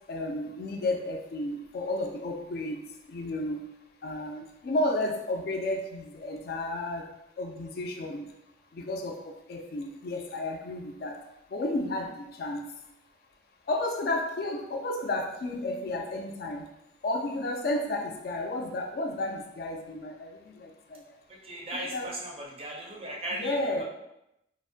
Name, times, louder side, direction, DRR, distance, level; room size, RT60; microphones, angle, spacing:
voice 1, 0.1-2.8 3.1-3.6 4.0-7.1 7.4-8.2 8.7-11.2 11.5-12.6 13.7-16.6 17.0-20.3 20.6-21.0 21.9-22.1 23.3-23.8, left 2 dB, 55° left, 3 dB, 0.3 m, -32 dB
voice 2, 21.3-23.8, right 1 dB, 30° right, -1 dB, 0.4 m, -37 dB
2.5 x 2.0 x 2.6 m, 0.86 s
head